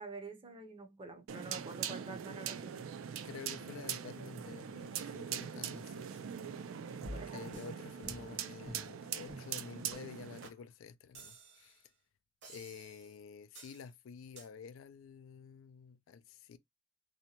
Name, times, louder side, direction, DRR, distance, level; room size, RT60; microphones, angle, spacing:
voice 1, 0.0-2.7 7.1-7.4, right 3 dB, 25° right, 0.5 m, -47 dB
sound 1, 1.3-10.5, right 8 dB, 90° right, 0.4 m, -42 dB
voice 2, 3.2-6.3 7.1-11.9 12.5-16.6, left 6 dB, 80° left, 0.3 m, -50 dB
Wind instrument woodwind instrument, 5.9-10.4, right 7 dB, 30° left, 0.6 m, -61 dB
sound 2, 7.0-7.7 8.0-8.4 8.7-8.9 9.3-9.5 9.9-10.0 10.4-10.6 11.1-11.8 12.4-13.1 13.5-13.9 14.4-14.5, equal, 60° right, 0.9 m, -50 dB
2.7 x 2.1 x 2.8 m
head